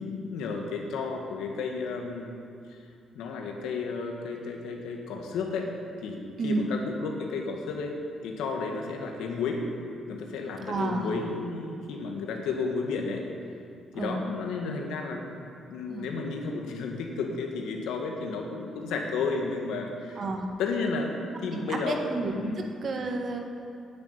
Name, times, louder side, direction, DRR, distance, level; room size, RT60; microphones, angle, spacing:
voice 1, 0.0-2.3 2.7-2.8 3.2-5.7 6.0-6.2 6.4-8.0 8.2-9.7 10.1-13.2 13.9-15.2 15.7-20.2 20.6-21.1 21.4-22.0 22.3-22.6, left 4 dB, 90° left, 2 dB, 1.7 m, -32 dB
voice 2, 10.7-11.1 13.9-14.2 15.9-16.1 20.2-20.4 21.5-22.5 22.8-23.4, right 3 dB, 50° right, 2 dB, 1.8 m, -31 dB
9.6 x 8.7 x 9.6 m, 2.4 s
cardioid pair, 90°, 0 cm